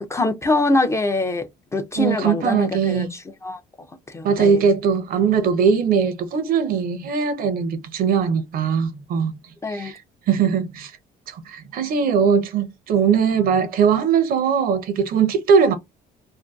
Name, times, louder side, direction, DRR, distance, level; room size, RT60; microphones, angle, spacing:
voice 1, 0.1-1.5 1.7-3.6 4.1-4.6 9.6-9.9, left 2 dB, 15° left, 0.4 m, -23 dB
voice 2, 2.0-3.1 4.2-9.3 9.7-10.0 10.3-10.9 11.3-15.7, right 6 dB, 60° right, 0.6 m, -20 dB
2.5 x 2.2 x 2.2 m
cardioid pair, 110°, 17 cm